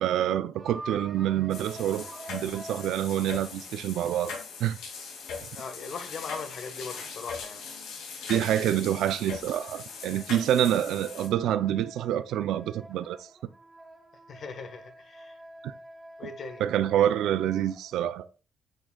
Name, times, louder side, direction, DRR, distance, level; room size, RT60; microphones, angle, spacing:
voice 1, 0.0-4.3 4.6-4.8 8.3-13.3 15.6-15.7 16.6-18.3, right 11 dB, 85° right, 0.4 m, -27 dB
sound 1, 0.6-4.2 8.9-18.1, right 2 dB, 15° right, 1.0 m, -47 dB
sound 2, 1.5-11.3, left 5 dB, 90° left, 2.3 m, -40 dB
voice 2, 5.5-7.7 14.3-15.4 16.2-16.6, left 5 dB, 55° left, 1.3 m, -39 dB
8.7 x 6.2 x 2.3 m
cardioid pair, 90°, 0 cm